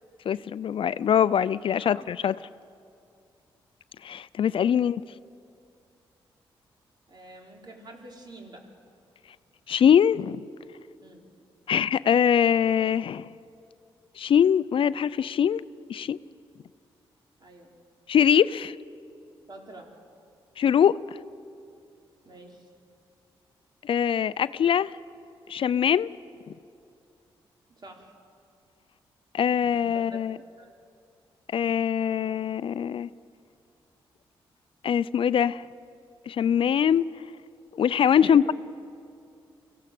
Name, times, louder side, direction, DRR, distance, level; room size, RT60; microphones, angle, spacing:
voice 1, 0.3-2.3 4.0-5.0 9.7-10.5 11.7-13.3 14.2-15.6 15.9-16.2 18.1-18.8 20.6-21.2 23.8-24.9 25.5-26.1 29.3-30.4 31.5-33.1 34.8-35.7 36.3-37.1 37.7-38.5, left 8 dB, 60° left, 17 dB, 0.5 m, -23 dB
voice 2, 7.1-8.7 11.0-11.3 17.4-17.7 19.5-19.9 22.2-22.7 27.8-28.1 29.5-30.3 30.6-30.7 38.1-38.5, right 2 dB, 45° right, 1 dB, 4.1 m, -47 dB
24.5 x 16.5 x 7.7 m, 2.4 s
cardioid pair, 60°, 10 cm